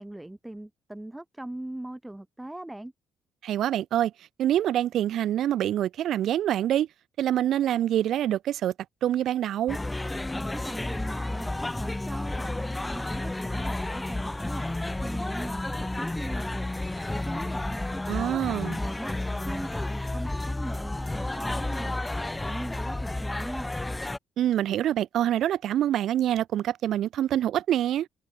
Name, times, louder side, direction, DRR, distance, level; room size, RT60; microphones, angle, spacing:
voice 1, 0.0-2.9 10.1-16.7 17.1-23.8, right 1 dB, 10° right, 1.4 m, -40 dB
voice 2, 3.4-4.1 4.4-6.9 7.2-8.7 9.0-9.8 18.1-18.8 24.4-28.1, right 11 dB, 55° right, 0.4 m, -25 dB
sound 1, 9.7-24.2, left 2 dB, 15° left, 1.2 m, -31 dB
figure-of-eight pair, 45°, 0 cm